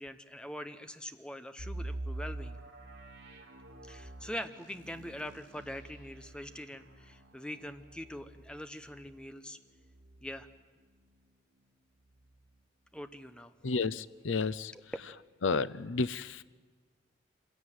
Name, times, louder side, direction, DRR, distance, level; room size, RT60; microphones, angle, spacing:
voice 1, 0.0-2.6 3.8-9.6 10.2-10.5 12.9-13.5 14.7-14.8, left 1 dB, 5° left, 10 dB, 0.9 m, -43 dB
sound 1, 1.6-11.3 11.7-11.8 12.3-12.5, right 2 dB, 65° right, 3.1 m, -46 dB
voice 2, 13.6-14.9 15.4-16.4, left 4 dB, 80° left, 17 dB, 0.7 m, -32 dB
26.0 x 16.0 x 9.3 m, 1.5 s
head